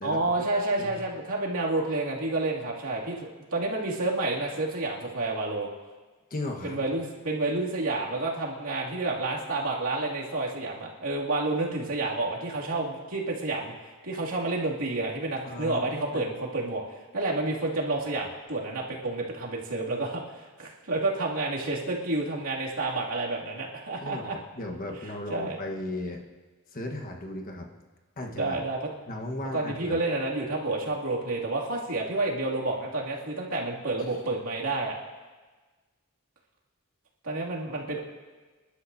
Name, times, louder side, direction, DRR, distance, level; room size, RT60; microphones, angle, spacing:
voice 1, 0.0-5.7 6.6-13.7 14.0-16.8 17.1-24.4 25.0-25.6 28.3-28.9 29.5-35.0 37.2-38.0, right 2 dB, 80° right, -4 dB, 2.6 m, -29 dB
voice 2, 6.3-6.8 15.4-16.3 24.0-26.2 26.7-27.7 28.2-28.6 29.1-30.0, left 1 dB, 40° left, 2 dB, 1.3 m, -36 dB
28.0 x 11.5 x 2.7 m, 1.3 s
head